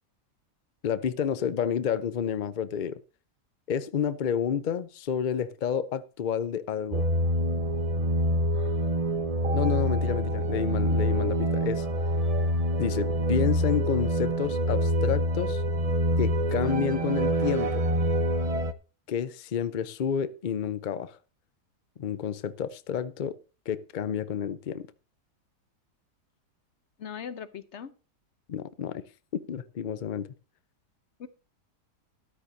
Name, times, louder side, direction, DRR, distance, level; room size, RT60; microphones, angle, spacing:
voice 1, 0.8-3.0 3.7-7.0 9.5-11.9 12.8-15.6 16.2-17.8 19.1-21.2 22.0-23.3 23.7-24.9 28.5-29.0 29.3-30.3, left 8 dB, 80° left, 0.4 m, -30 dB
sound 1, 6.9-18.7, equal, 50° right, 0.4 m, -26 dB
voice 2, 8.5-8.8 27.0-27.9 31.2-31.3, left 7 dB, 50° left, 1.0 m, -40 dB
13.0 x 12.0 x 2.7 m
omnidirectional pair, 1.7 m